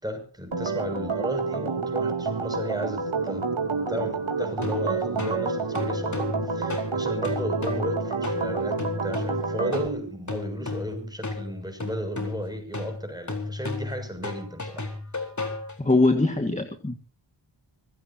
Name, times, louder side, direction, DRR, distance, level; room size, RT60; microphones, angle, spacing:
voice 1, 0.0-3.5 3.9-14.9, equal, 10° right, 5 dB, 6.8 m, -34 dB
Organ, 0.5-9.9, right 4 dB, 65° right, 2.8 m, -28 dB
sound 1, 4.6-16.1, left 3 dB, 35° left, 4.2 m, -34 dB
voice 2, 15.8-16.9, left 2 dB, 15° left, 7 dB, 2.0 m, -22 dB
25.0 x 16.5 x 2.9 m, 0.37 s
wide cardioid pair, 60°, 50 cm